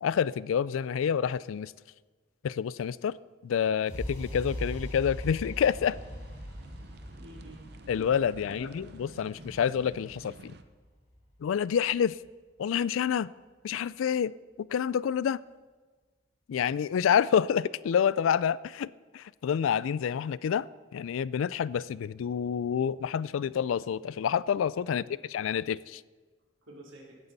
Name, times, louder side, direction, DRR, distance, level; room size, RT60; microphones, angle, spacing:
voice 1, 0.0-1.7 2.4-3.1 3.4-6.0 7.9-10.5 11.4-12.1 12.6-13.3 13.6-14.3 14.7-15.4 16.5-20.7 20.9-26.0, left 8 dB, 90° left, 20 dB, 0.3 m, -28 dB
sound 1, 3.9-11.8, equal, 40° left, 3.6 m, -41 dB
sound 2, 5.6-10.6, right 2 dB, 55° right, 0.7 m, -51 dB
voice 2, 7.2-7.9 8.3-8.8 24.8-25.2 26.7-27.2, right 1 dB, 85° right, -2 dB, 3.1 m, -50 dB
17.0 x 9.4 x 4.1 m, 1.4 s
head